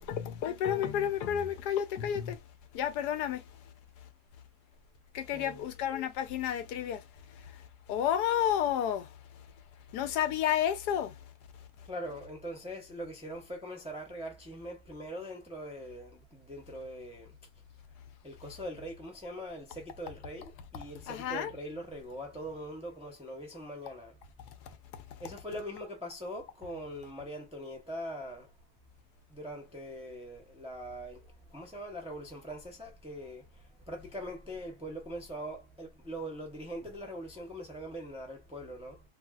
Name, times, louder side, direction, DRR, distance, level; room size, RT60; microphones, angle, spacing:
voice 1, 0.0-2.4 2.7-3.4 5.1-7.0 7.9-9.1 9.9-11.2 21.1-21.5, left 10 dB, 90° left, 1.2 m, -31 dB
voice 2, 5.3-5.7 11.8-17.3 18.2-24.1 25.2-28.5 29.3-33.4 33.9-39.0, equal, 5° right, 0.4 m, -42 dB
3.3 x 2.6 x 2.3 m
omnidirectional pair, 1.7 m